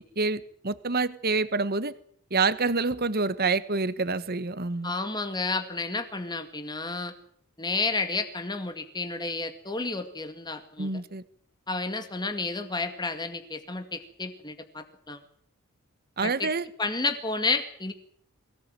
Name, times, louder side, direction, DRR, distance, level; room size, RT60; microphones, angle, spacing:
voice 1, 0.2-1.9 2.3-4.9 10.8-11.2 16.2-16.6, right 3 dB, 45° right, 14 dB, 1.4 m, -27 dB
voice 2, 4.8-7.1 7.6-10.9 11.7-15.2 16.2-16.5 16.8-17.9, left 3 dB, 20° left, 7 dB, 2.1 m, -31 dB
23.0 x 17.5 x 9.0 m, 0.63 s
head